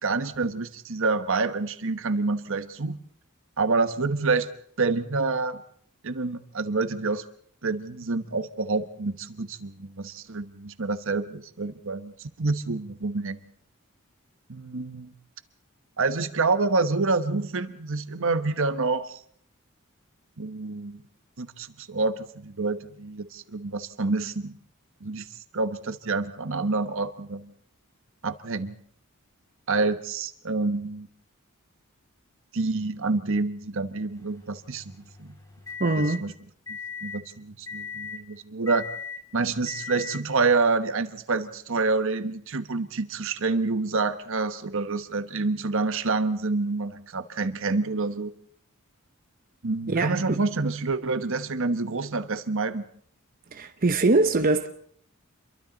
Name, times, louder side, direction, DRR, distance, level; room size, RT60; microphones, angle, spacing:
voice 1, 0.0-3.0 3.6-4.5 4.8-5.6 6.0-7.2 7.6-13.4 14.5-15.1 16.0-19.2 20.4-21.0 21.4-24.5 25.0-25.3 25.5-27.5 28.2-28.8 29.7-31.1 32.5-34.9 35.2-35.3 36.2-36.3 37.0-38.9 39.3-48.3 49.6-52.9, right 3 dB, 65° right, 1.2 m, -27 dB
sound 1, 34.1-36.2 36.7-37.2 37.7-38.2 38.7-39.2 39.7-40.2, left 6 dB, 15° left, 3.6 m, -38 dB
voice 2, 35.8-36.2 49.9-50.4 53.5-54.7, right 3 dB, 45° right, 0.9 m, -23 dB
28.0 x 23.0 x 4.0 m
head